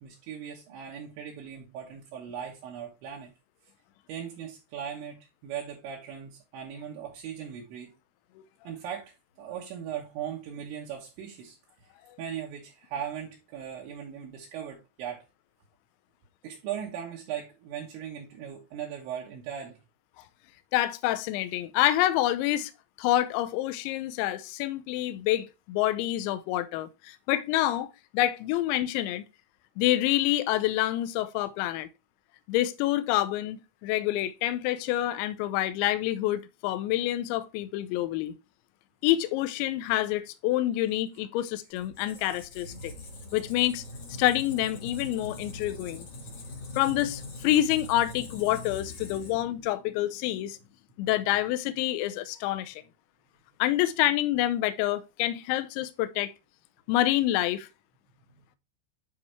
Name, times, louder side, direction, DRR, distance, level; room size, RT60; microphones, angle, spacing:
voice 1, 0.0-3.3 4.1-7.9 8.6-11.6 12.2-15.2 16.4-19.8 58.3-58.4, right 9 dB, 70° right, 3.2 m, -38 dB
voice 2, 20.7-22.7 23.0-27.9 28.1-29.2 29.8-31.9 32.5-38.4 39.0-42.9 43.3-43.8 44.2-46.1 46.8-50.6 51.0-52.8 53.6-56.3 56.9-57.7, left 14 dB, 80° left, 2.7 m, -27 dB
Squeak, 41.8-49.6, left 2 dB, 60° left, 1.5 m, -42 dB
9.6 x 4.8 x 3.2 m
omnidirectional pair, 5.9 m